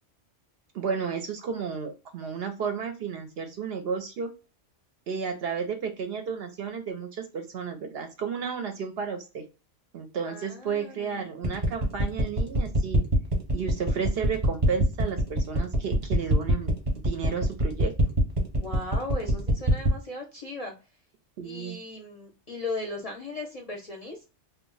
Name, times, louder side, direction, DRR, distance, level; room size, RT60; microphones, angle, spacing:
voice 1, 0.7-4.3 5.1-9.4 9.9-13.0 13.5-16.7 17.0-17.9 21.4-21.8, right 6 dB, 65° right, 6 dB, 0.7 m, -32 dB
voice 2, 10.3-11.3 18.5-20.7 21.4-24.3, left 2 dB, 40° left, 0 dB, 0.6 m, -37 dB
sound 1, 11.4-20.0, equal, 30° right, 0.8 m, -24 dB
2.2 x 2.1 x 3.7 m, 0.31 s
omnidirectional pair, 1.2 m